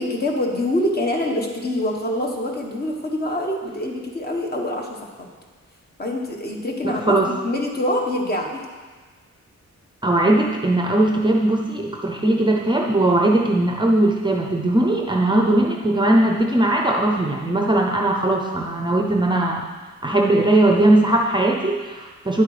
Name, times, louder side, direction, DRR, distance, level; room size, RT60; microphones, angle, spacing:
voice 1, 0.0-5.3 6.0-7.2 7.4-8.6, left 1 dB, 30° left, 1 dB, 1.4 m, -25 dB
voice 2, 6.9-7.3 10.0-19.7 20.0-22.4, right 1 dB, 15° right, 1 dB, 0.7 m, -19 dB
10.0 x 7.9 x 5.0 m, 1.4 s
wide cardioid pair, 160°, 30 cm